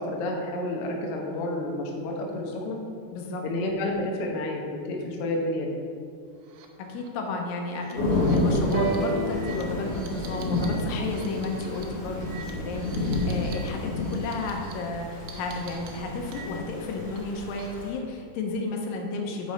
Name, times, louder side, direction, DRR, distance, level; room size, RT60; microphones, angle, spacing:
voice 1, 0.0-2.8 3.4-5.8, left 1 dB, 65° left, 0 dB, 1.5 m, -30 dB
voice 2, 3.1-3.4 6.9-19.5, left 3 dB, 85° left, 2 dB, 2.6 m, -32 dB
sound 1, 6.4-6.7 7.0-7.1 7.6-13.7 14.0-14.7 15.3-16.8 17.2-17.9, right 4 dB, 70° right, 1.9 m, -47 dB
Thunder / Rain, 8.0-17.9, left 2 dB, 50° left, 2.7 m, -30 dB
sound 2, 8.7-12.6 13.5-13.6, right 3 dB, 90° right, 2.5 m, -34 dB
8.4 x 6.1 x 4.2 m, 2.3 s
omnidirectional pair, 3.9 m